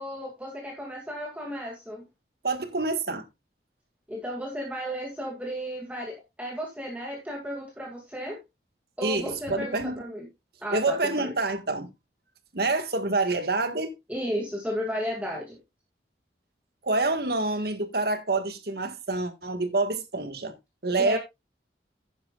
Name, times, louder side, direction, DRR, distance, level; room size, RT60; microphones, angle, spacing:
voice 1, 0.0-2.0 4.1-8.4 9.0-10.3 10.6-11.3 14.1-15.6 21.0-21.2, equal, 10° right, 2.3 m, -34 dB
voice 2, 2.4-3.3 9.0-10.0 10.7-11.9 12.5-13.9 16.8-20.5 20.8-21.2, right 2 dB, 60° right, 1.6 m, -27 dB
11.5 x 9.5 x 2.4 m
head